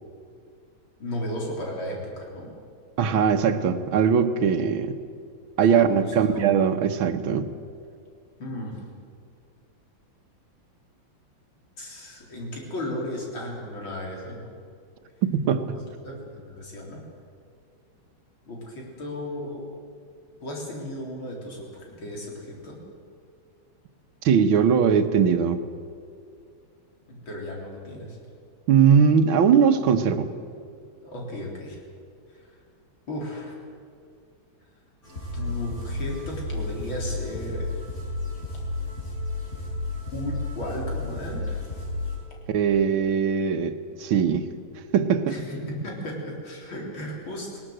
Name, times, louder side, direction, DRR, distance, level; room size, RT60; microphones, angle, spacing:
voice 1, 1.0-2.5 5.6-6.4 8.4-8.8 11.8-14.5 16.0-17.0 18.5-19.7 20.4-22.8 27.1-28.2 31.0-31.8 32.3-32.6 33.1-33.6 35.3-37.7 40.1-41.6 45.3-47.6, left 1 dB, 85° left, -2 dB, 4.7 m, -35 dB
voice 2, 3.0-5.0 5.6-7.5 15.2-15.8 24.2-25.6 28.7-30.3 42.5-44.5 44.9-45.4, right 7 dB, 90° right, 9 dB, 1.9 m, -20 dB
sound 1, 35.0-42.2, left 2 dB, 45° left, 7.9 m, -32 dB
19.5 x 18.5 x 7.8 m, 2.3 s
omnidirectional pair, 2.2 m